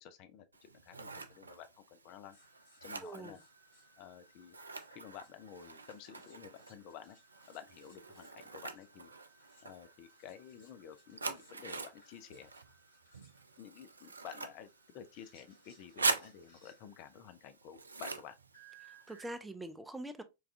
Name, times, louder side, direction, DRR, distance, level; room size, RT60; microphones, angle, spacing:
voice 1, 0.0-2.4 2.8-3.4 4.0-4.6 4.9-7.2 7.5-9.1 9.6-12.5 13.6-14.7 14.9-18.4, left 9 dB, 45° left, 0.4 m, -51 dB
Scissors, 0.5-19.3, right 3 dB, 75° right, 0.3 m, -44 dB
sound 1, 2.3-17.2 18.5-19.4, right 3 dB, 60° left, 2.1 m, -65 dB
voice 2, 3.0-3.4 18.8-20.2, right 1 dB, 5° right, 0.5 m, -44 dB
4.6 x 2.3 x 2.4 m
figure-of-eight pair, 90°, 0 cm